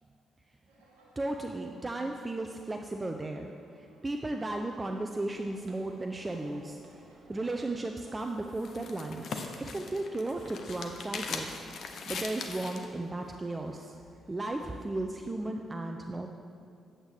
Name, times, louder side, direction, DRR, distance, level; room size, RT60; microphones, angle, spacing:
sound 1, 0.7-14.8, right 1 dB, 85° right, 1.2 m, -60 dB
voice 1, 1.2-7.0 7.3-14.0 14.3-16.3, right 2 dB, 25° right, 3 dB, 0.5 m, -35 dB
sound 2, 5.3-11.6, right 2 dB, 50° right, 1.0 m, -58 dB
sound 3, 8.1-12.9, left 4 dB, 60° left, 0.6 m, -40 dB
8.8 x 8.1 x 3.4 m, 2.4 s
hypercardioid pair, 40°, 0 cm